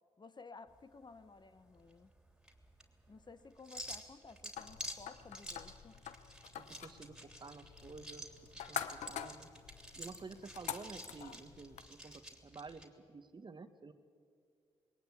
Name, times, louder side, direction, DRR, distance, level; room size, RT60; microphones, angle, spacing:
voice 1, 0.2-2.1 3.1-6.0, left 4 dB, 40° left, 12 dB, 1.1 m, -55 dB
sound 1, 0.7-12.9, equal, 5° right, 3.3 m, -51 dB
sound 2, 4.6-11.9, left 9 dB, 85° left, 0.8 m, -47 dB
voice 2, 6.6-8.3 8.7-9.5 10.0-13.9, right 4 dB, 40° right, 9 dB, 1.6 m, -51 dB
21.0 x 18.0 x 8.7 m, 2.2 s
supercardioid pair, 50°, 12 cm